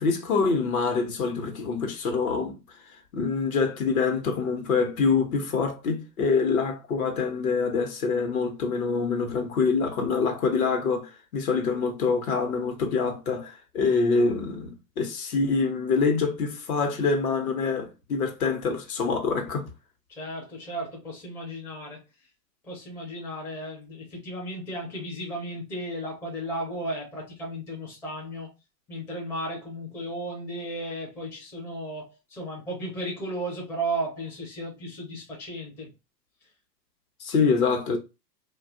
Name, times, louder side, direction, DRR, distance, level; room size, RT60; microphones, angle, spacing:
voice 1, 0.0-2.6 3.1-19.6 37.2-38.0, left 4 dB, 60° left, 1.0 m, -25 dB
voice 2, 20.2-22.0 22.7-28.5 28.9-35.9, right 1 dB, 5° left, 0.5 m, -34 dB
2.7 x 2.4 x 2.5 m
hypercardioid pair, 120°, 48 cm